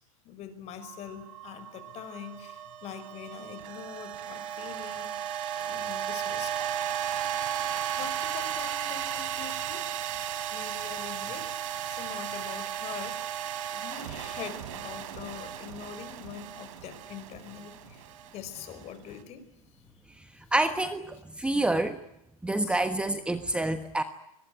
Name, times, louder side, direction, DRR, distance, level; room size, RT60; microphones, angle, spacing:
voice 1, 0.2-5.2 5.5-6.6 8.0-9.8 10.5-11.5 11.9-13.2 13.7-19.4 19.7-19.8 20.4-20.5 21.4-21.5 22.4-22.8, left 9 dB, 35° left, 11 dB, 5.1 m, -44 dB
sound 1, 0.8-19.1, right 10 dB, 65° right, 3.9 m, -35 dB
voice 2, 20.5-22.0 22.4-24.0, right 2 dB, 5° right, 9 dB, 1.3 m, -27 dB
26.0 x 21.5 x 9.3 m, 0.81 s
hypercardioid pair, 120°, 18 cm